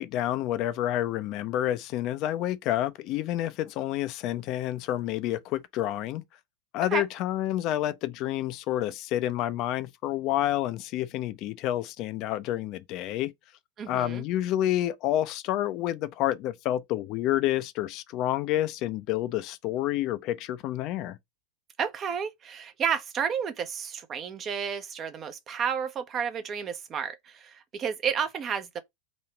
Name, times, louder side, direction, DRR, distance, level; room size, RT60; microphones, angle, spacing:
voice 1, 0.0-6.2 6.7-13.3 13.9-21.2, left 13 dB, 40° left, 0.5 m, -29 dB
voice 2, 13.8-14.2 21.8-28.8, right 7 dB, 25° right, 0.6 m, -31 dB
3.0 x 2.8 x 4.4 m
figure-of-eight pair, 90°, 0 cm